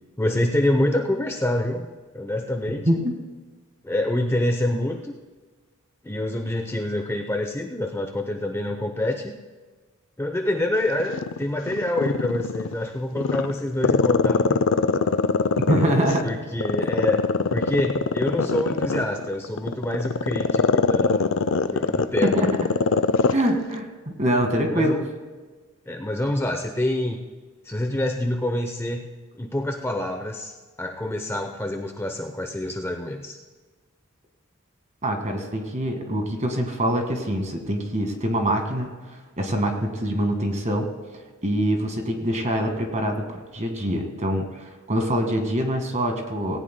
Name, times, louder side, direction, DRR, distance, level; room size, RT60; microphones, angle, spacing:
voice 1, 0.2-1.9 2.1-2.9 3.8-5.1 6.0-9.3 10.2-14.6 16.2-17.2 17.5-21.3 21.7-22.5 24.7-25.0 25.9-27.3 27.6-29.0 29.4-30.5 30.8-33.4, left 1 dB, 10° left, 4 dB, 0.7 m, -26 dB
Growling, 11.0-12.7 13.2-16.2 16.6-23.4 23.7-23.8, left 4 dB, 65° left, 0.5 m, -22 dB
voice 2, 15.7-16.3 22.2-22.5 23.3-25.0 35.0-46.6, right 1 dB, 35° right, 4 dB, 1.8 m, -24 dB
18.5 x 17.5 x 2.2 m, 1.4 s
head